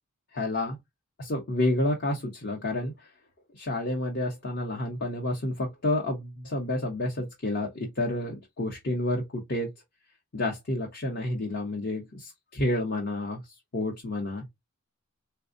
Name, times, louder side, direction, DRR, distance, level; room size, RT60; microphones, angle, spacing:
voice 1, 0.3-0.8 1.2-3.1 3.5-9.7 10.3-13.4 13.7-14.4, left 1 dB, 45° left, 0.9 m, -30 dB
4.3 x 2.2 x 2.5 m
head